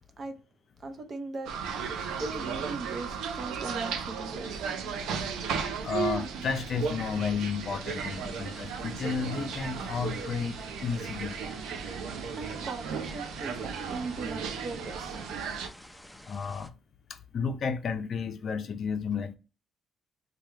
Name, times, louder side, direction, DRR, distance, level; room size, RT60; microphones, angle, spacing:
voice 1, 0.8-1.6 2.2-4.7 12.3-15.2, right 3 dB, 45° right, 0.7 m, -39 dB
sound 1, 1.5-15.7, right 6 dB, 85° right, 0.5 m, -35 dB
voice 2, 5.8-11.4 16.3-16.7 17.1-19.4, left 5 dB, 55° left, 0.4 m, -32 dB
sound 2, 7.9-16.7, left 1 dB, 5° left, 0.5 m, -51 dB
3.2 x 2.2 x 3.2 m
cardioid pair, 90°, 0 cm